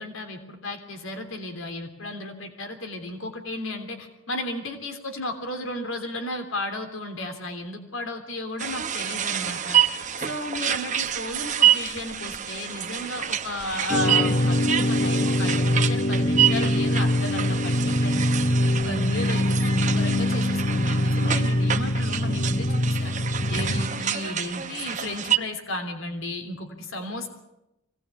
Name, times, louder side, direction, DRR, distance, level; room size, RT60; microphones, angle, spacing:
voice 1, 0.0-9.8 10.2-18.3 18.6-23.1 23.5-27.3, left 1 dB, 70° left, 6 dB, 3.3 m, -34 dB
sound 1, 8.6-25.4, right 10 dB, 35° right, 0.9 m, -27 dB
sound 2, 13.9-23.9, left 1 dB, 35° left, 1.0 m, -23 dB
24.0 x 18.5 x 8.5 m, 0.90 s
head